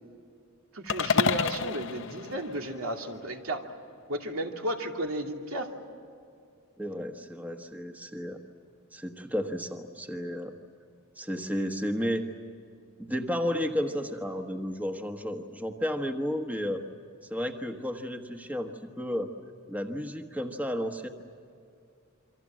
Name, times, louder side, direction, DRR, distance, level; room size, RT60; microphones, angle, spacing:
voice 1, 0.7-3.6 4.1-5.7, right 1 dB, 85° right, 2 dB, 2.6 m, -33 dB
sound 1, 0.9-3.2, left 5 dB, 60° left, 0.7 m, -29 dB
voice 2, 6.8-8.4 8.9-10.5 11.2-12.3 13.0-16.8 17.3-18.7 19.0-19.3 19.7-21.1, equal, 10° right, 4 dB, 1.3 m, -32 dB
28.0 x 24.5 x 7.6 m, 2.4 s
head